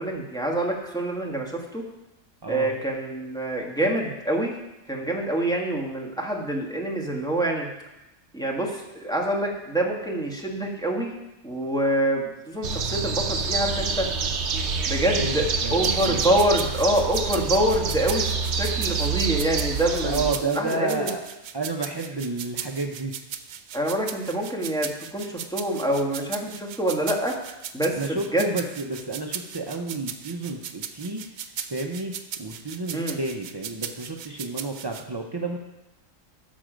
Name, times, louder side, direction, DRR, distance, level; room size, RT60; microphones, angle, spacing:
voice 1, 0.0-1.9 2.5-4.5 4.9-7.7 8.3-11.2 11.4-14.1 14.8-15.4 15.7-18.3 18.5-20.2 20.5-21.1 23.7-27.3 27.7-28.5 32.9-33.2, right 1 dB, 5° left, -2 dB, 1.4 m, -26 dB
sound 1, 12.6-20.3, right 5 dB, 60° right, 1.0 m, -27 dB
voice 2, 15.2-16.4 20.0-21.2 21.5-23.2 27.9-31.4 31.7-35.6, right 3 dB, 30° right, 1 dB, 0.4 m, -31 dB
sound 2, 15.8-35.0, right 8 dB, 85° right, 1.1 m, -37 dB
12.5 x 6.4 x 5.1 m, 0.97 s
omnidirectional pair, 1.4 m